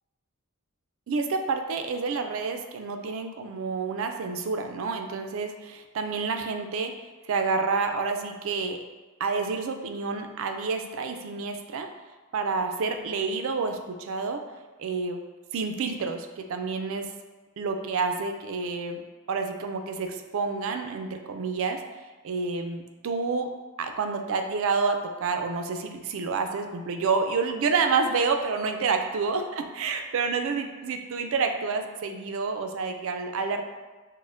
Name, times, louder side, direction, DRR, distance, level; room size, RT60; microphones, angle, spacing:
voice 1, 1.1-6.9 7.3-8.8 9.2-11.9 12.3-14.4 14.8-15.2 15.5-17.1 17.6-19.0 19.3-21.8 22.2-23.5 23.8-33.6, right 4 dB, 65° right, 5 dB, 0.4 m, -29 dB
6.0 x 2.1 x 2.5 m, 1.2 s
head